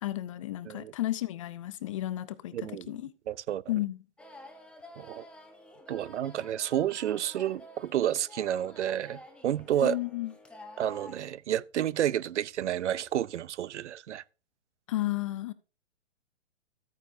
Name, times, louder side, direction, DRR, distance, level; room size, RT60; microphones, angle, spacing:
voice 1, 0.0-3.1 3.7-4.0 9.8-10.3 14.9-15.5, left 15 dB, 30° left, 0.4 m, -33 dB
voice 2, 2.5-2.9 3.3-3.6 5.0-5.3 5.9-10.0 10.8-14.2, right 11 dB, 70° right, 0.6 m, -30 dB
sound 1, 4.2-11.4, left 1 dB, 5° left, 0.9 m, -50 dB
13.0 x 9.3 x 2.6 m
hypercardioid pair, 135°, 36 cm